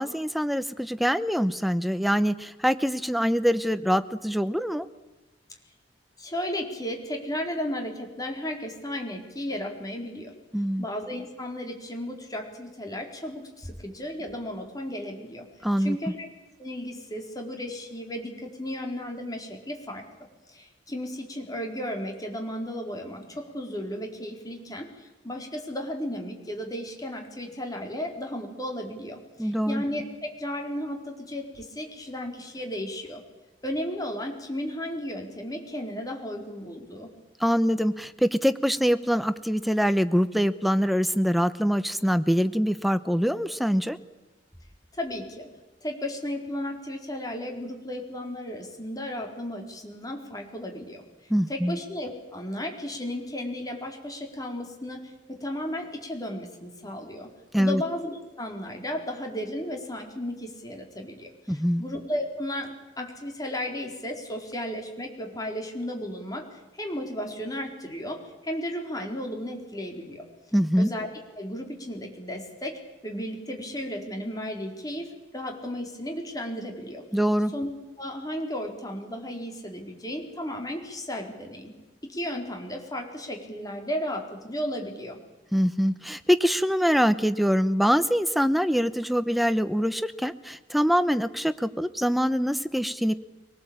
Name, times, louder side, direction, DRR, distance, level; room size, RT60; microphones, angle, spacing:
voice 1, 0.0-4.9 10.5-10.8 15.6-16.0 29.4-29.8 37.4-44.0 51.3-51.8 57.5-57.8 61.5-61.8 70.5-70.9 77.1-77.5 85.5-93.1, equal, ahead, 12 dB, 0.8 m, -24 dB
voice 2, 6.2-10.3 10.8-15.5 15.8-16.3 16.6-20.1 20.5-33.2 33.6-37.1 44.9-45.4 45.8-51.0 51.5-57.3 57.6-70.2 70.8-71.1 71.4-75.1 75.3-77.0 77.5-77.7 78.0-81.7 82.0-85.2, left 1 dB, 20° left, 2 dB, 4.3 m, -34 dB
24.5 x 19.0 x 8.8 m, 1.1 s
head